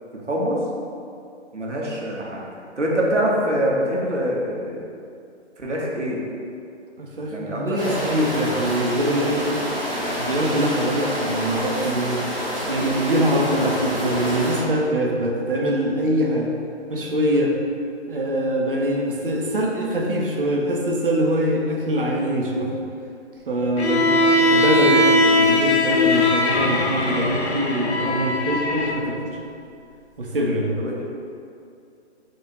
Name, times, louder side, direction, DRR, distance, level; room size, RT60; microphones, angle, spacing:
voice 1, 0.1-0.6 1.5-2.4 2.8-4.8 5.6-6.2 7.3-8.0 24.0-24.3 30.8-31.0, equal, 85° right, -3 dB, 1.0 m, -24 dB
voice 2, 7.0-9.5 10.2-12.2 12.7-16.5 16.9-17.5 18.1-22.7 23.5-29.4 30.2-30.7, equal, 50° right, -1 dB, 0.6 m, -23 dB
sound 1, 7.7-14.6, equal, ahead, 0.5 m, -28 dB
Bowed string instrument, 23.8-29.0, left 1 dB, 65° left, 0.6 m, -19 dB
3.7 x 2.4 x 4.4 m, 2.5 s
figure-of-eight pair, 140°, 35 cm